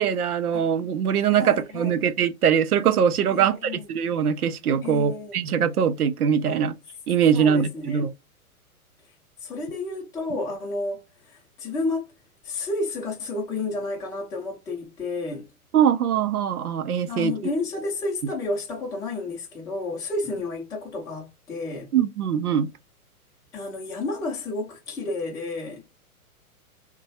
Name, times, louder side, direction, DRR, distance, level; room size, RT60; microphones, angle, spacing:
voice 1, 0.0-6.7 7.1-8.1 15.7-17.3 21.9-22.7, right 8 dB, 75° right, 0.6 m, -22 dB
voice 2, 1.3-1.9 3.3-3.9 4.8-5.4 6.5-6.6 7.3-8.0 9.4-12.1 12.4-15.5 17.1-21.9 23.5-25.8, left 2 dB, 10° left, 0.5 m, -31 dB
3.0 x 2.2 x 2.6 m
figure-of-eight pair, 110°, 45 cm